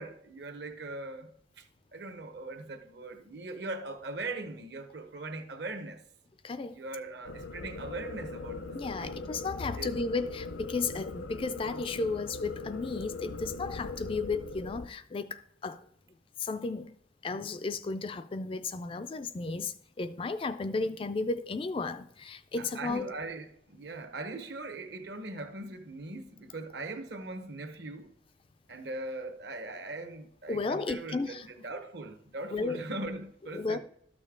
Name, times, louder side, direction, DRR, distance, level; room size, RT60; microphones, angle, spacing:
voice 1, 0.0-1.7 1.9-6.0 6.7-8.6 9.0-9.3 9.8-10.0 10.9-11.0 22.6-28.1 28.7-33.8, right 2 dB, 60° right, 1.0 m, -40 dB
voice 2, 6.4-6.8 8.7-15.8 16.4-16.9 17.2-23.1 30.5-31.4 32.5-32.8 33.5-33.8, left 3 dB, 30° left, 0.3 m, -34 dB
sound 1, 7.2-14.9, left 3 dB, 85° left, 0.6 m, -40 dB
12.5 x 6.5 x 3.7 m
head